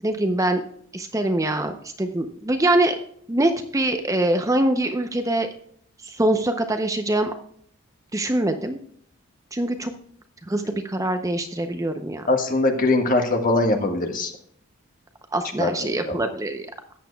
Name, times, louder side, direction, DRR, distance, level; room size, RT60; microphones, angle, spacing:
voice 1, 0.0-0.6 0.9-3.0 3.3-5.5 6.0-7.3 8.1-8.8 9.5-9.9 10.5-12.2 15.3-16.7, right 1 dB, 15° right, 7 dB, 0.6 m, -23 dB
voice 2, 12.3-14.3 15.6-16.3, left 2 dB, 40° left, 4 dB, 1.5 m, -22 dB
13.5 x 9.0 x 2.2 m, 0.63 s
head